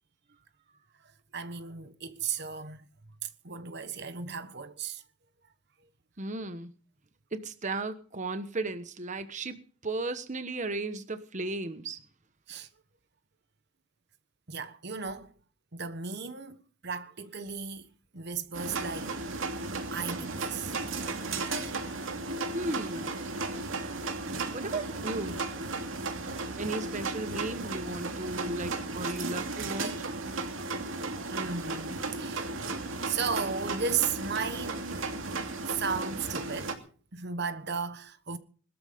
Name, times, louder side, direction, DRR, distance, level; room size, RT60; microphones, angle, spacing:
voice 1, 1.3-2.9 3.2-5.0 12.5-12.7 14.5-15.3 15.7-17.9 18.1-19.2 19.9-20.7 31.3-31.9 32.2-32.6 33.0-35.1 35.7-36.8 37.1-38.4, right 6 dB, 55° right, 1.3 m, -35 dB
voice 2, 6.2-6.7 7.3-12.0 22.5-23.2 24.5-25.4 26.6-29.9, right 2 dB, 35° right, 1.2 m, -35 dB
sound 1, 18.5-36.7, right 3 dB, 75° right, 2.7 m, -35 dB
21.0 x 13.5 x 5.2 m
head